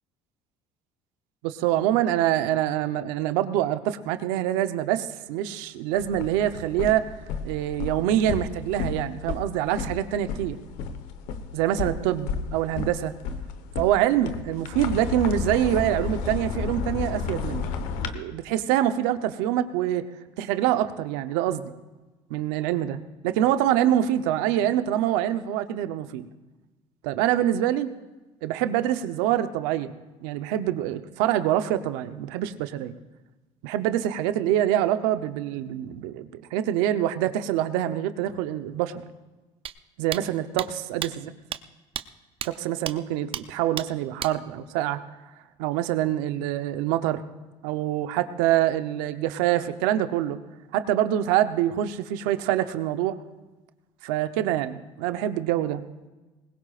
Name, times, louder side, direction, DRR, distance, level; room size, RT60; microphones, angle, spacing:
voice 1, 1.4-7.1 7.4-10.6 11.5-13.1 13.8-17.7 18.1-20.0 20.4-21.7 22.3-26.3 27.0-27.9 28.4-29.9 30.2-32.9 33.6-39.0 40.0-41.3 42.4-45.0 45.6-47.2 47.6-50.4 50.7-53.2 54.0-55.8, right 12 dB, 90° right, 10 dB, 0.9 m, -25 dB
sound 1, 5.9-18.1, left 5 dB, 80° left, 1.3 m, -33 dB
sound 2, 39.7-39.8 40.1-40.2 40.6-40.7 41.0-41.1 41.5-41.6 42.0-42.1 42.4-42.5 42.9-43.0 43.3-43.4 43.8-43.9 44.2-44.3, right 10 dB, 45° right, 0.7 m, -31 dB
21.0 x 19.0 x 2.5 m, 1.1 s
supercardioid pair, 95°, 13 cm